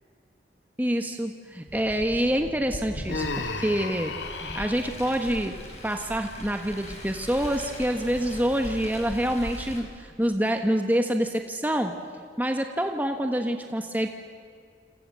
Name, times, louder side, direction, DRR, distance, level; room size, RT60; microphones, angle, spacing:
voice 1, 0.8-4.1 4.4-5.6 5.8-11.9 12.4-14.1, equal, 10° right, 4 dB, 1.3 m, -26 dB
Car, 1.7-9.8, left 1 dB, 40° left, 5.8 m, -40 dB
Human voice, 3.1-5.0, left 3 dB, 85° left, 2.3 m, -33 dB
28.5 x 27.5 x 7.6 m, 2.2 s
head